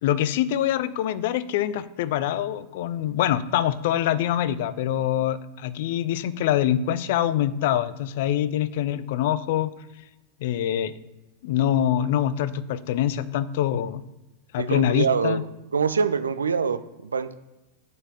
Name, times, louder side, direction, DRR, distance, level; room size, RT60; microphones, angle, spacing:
voice 1, 0.0-9.7 10.4-10.9 11.4-14.0 14.5-15.4, left 11 dB, 50° left, 17 dB, 0.5 m, -24 dB
voice 2, 14.6-15.4 15.7-17.3, right 6 dB, 70° right, 12 dB, 0.5 m, -24 dB
9.3 x 5.6 x 5.7 m, 1.0 s
figure-of-eight pair, 90°, 0 cm